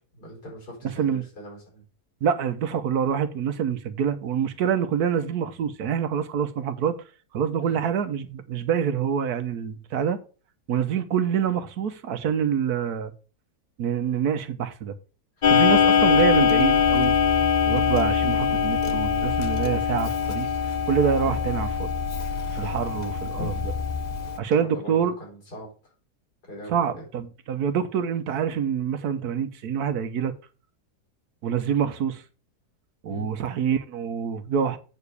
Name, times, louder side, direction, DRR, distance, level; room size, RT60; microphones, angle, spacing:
voice 1, 0.1-1.8 7.6-7.8 15.4-15.5 15.8-16.1 21.2-21.4 24.4-25.9 26.5-27.0 33.1-33.3, equal, 80° left, 4.8 m, -41 dB
voice 2, 0.8-1.2 2.2-7.0 7.3-10.2 10.7-13.1 13.8-14.9 15.4-17.2 17.7-20.5 20.9-21.9 22.5-23.7 24.4-25.1 26.7-30.3 31.4-32.2 33.0-34.8, right 8 dB, 75° right, 1.3 m, -26 dB
Clock, 15.4-24.4, left 7 dB, 60° left, 0.4 m, -23 dB
7.8 x 4.9 x 6.7 m
omnidirectional pair, 1.7 m